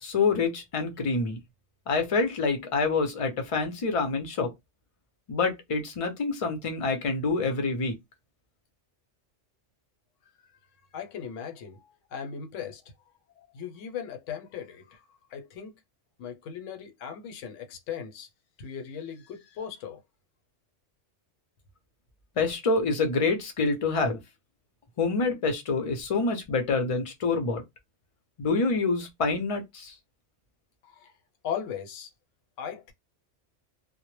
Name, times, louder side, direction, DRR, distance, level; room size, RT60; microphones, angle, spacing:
voice 1, 0.0-1.4 1.9-4.5 5.3-7.9 22.4-24.2 25.0-27.6 28.4-29.9, left 4 dB, 45° left, 0.4 m, -27 dB
voice 2, 10.9-11.8 12.1-12.8 13.5-15.0 15.3-15.7 16.2-18.3 18.6-20.0 30.8-31.1 31.4-32.1 32.6-32.9, left 8 dB, 90° left, 1.0 m, -37 dB
2.0 x 2.0 x 3.0 m
omnidirectional pair, 1.3 m